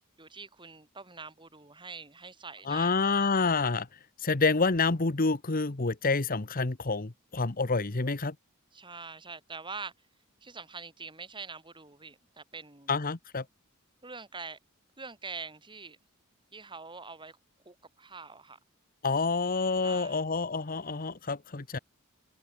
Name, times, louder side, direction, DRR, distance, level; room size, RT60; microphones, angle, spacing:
voice 1, 0.2-3.3 8.7-9.9 10.4-12.9 14.0-14.6 15.0-16.0 16.5-17.4 17.7-18.6 19.8-20.2 20.8-21.0, right 4 dB, 20° right, 7.0 m, -44 dB
voice 2, 2.6-3.9 4.2-8.3 12.9-13.4 19.0-21.8, left 4 dB, 40° left, 1.1 m, -28 dB
head